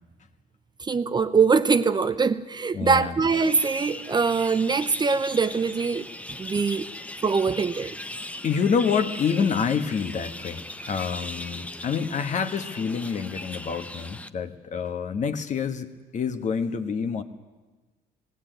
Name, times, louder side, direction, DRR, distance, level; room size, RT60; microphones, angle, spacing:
voice 1, 0.8-6.1 6.4-6.9 7.2-8.0, right 5 dB, 25° right, 12 dB, 0.7 m, -23 dB
voice 2, 2.7-3.2 8.4-17.2, left 6 dB, 45° left, 9 dB, 1.4 m, -27 dB
sound 1, 3.3-14.3, left 1 dB, 10° left, 0.8 m, -39 dB
19.5 x 17.0 x 9.2 m, 1.3 s
cardioid pair, 110°, 17 cm